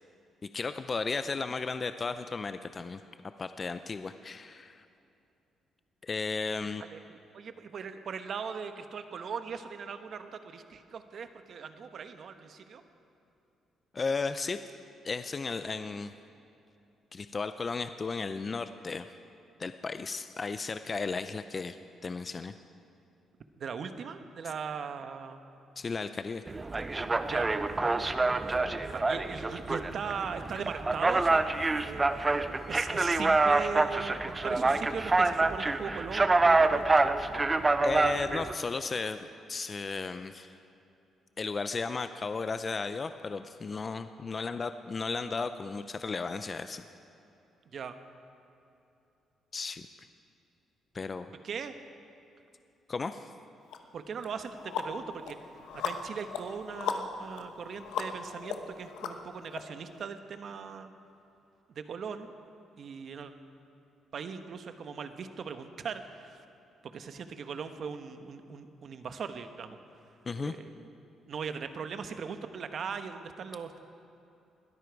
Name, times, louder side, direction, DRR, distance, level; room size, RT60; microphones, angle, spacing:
voice 1, 0.5-3.0 3.4-4.8 6.0-6.8 13.9-14.6 15.0-16.1 17.1-19.1 19.6-21.8 22.0-22.5 25.8-26.4 37.8-40.5 41.4-46.8 49.5-49.9 50.9-51.3 52.9-53.3 70.3-70.6, left 4 dB, 35° left, 10 dB, 0.5 m, -34 dB
voice 2, 6.8-12.8 23.6-25.4 27.3-27.5 28.8-31.4 31.8-32.0 32.7-36.9 47.7-48.0 51.4-51.7 53.9-55.4 55.7-60.9 61.7-62.3 62.8-63.3 64.1-66.4 66.8-69.8 70.4-70.9 71.3-73.8, right 6 dB, 55° right, 9 dB, 1.1 m, -39 dB
sound 1, 26.5-38.5, right 3 dB, 25° right, 0.6 m, -27 dB
sound 2, 53.7-53.8 54.2-59.6, left 6 dB, 85° left, 1.1 m, -37 dB
21.0 x 13.0 x 4.7 m, 2.8 s
cardioid pair, 90°, 0 cm